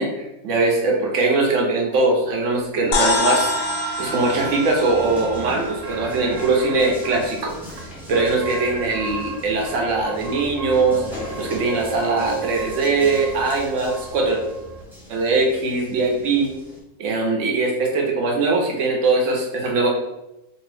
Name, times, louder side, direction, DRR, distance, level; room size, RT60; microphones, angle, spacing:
voice 1, 0.0-3.5 4.0-7.5 8.1-11.0 11.4-14.4 15.1-16.5 17.0-19.9, right 3 dB, 65° right, 0 dB, 0.9 m, -21 dB
sound 1, 2.0-16.8, equal, 5° right, 0.4 m, -40 dB
sound 2, 2.9-7.5, left 2 dB, 70° left, 0.9 m, -26 dB
sound 3, 5.8-7.2 7.7-7.8 8.1-9.4 9.6-14.8, right 4 dB, 90° right, 1.2 m, -34 dB
2.7 x 2.6 x 3.3 m, 0.91 s
omnidirectional pair, 1.6 m